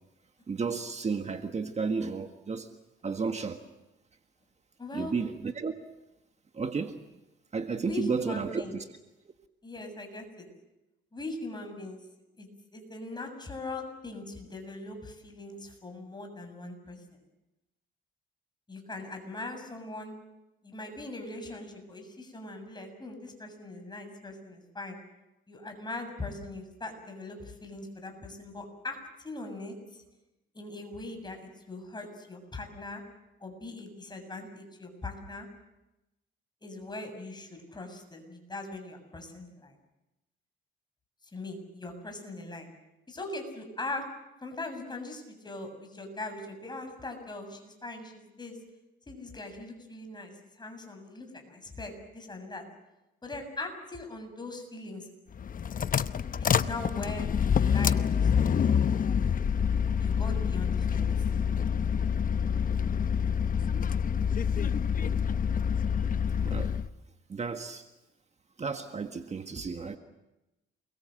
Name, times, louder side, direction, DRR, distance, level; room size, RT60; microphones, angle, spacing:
voice 1, 0.5-2.7 3.0-3.6 4.9-5.7 6.5-7.0 7.5-8.9 66.4-66.8 67.3-67.9 68.6-70.0, right 5 dB, 35° right, 6 dB, 1.7 m, -32 dB
voice 2, 4.8-5.1 7.8-8.7 9.6-10.5 11.1-12.0 12.4-17.0 18.7-20.2 20.6-25.0 25.5-30.0 30.5-33.0 33.4-35.5 36.6-39.7 41.3-42.7 43.1-44.1 44.4-48.6 49.1-52.6 53.2-55.1 56.4-59.1 60.0-61.1, left 2 dB, 20° left, 5 dB, 7.2 m, -41 dB
sound 1, 55.3-66.9, left 7 dB, 45° left, 0.9 m, -27 dB
28.5 x 22.0 x 7.8 m, 0.95 s
cardioid pair, 90°, 20 cm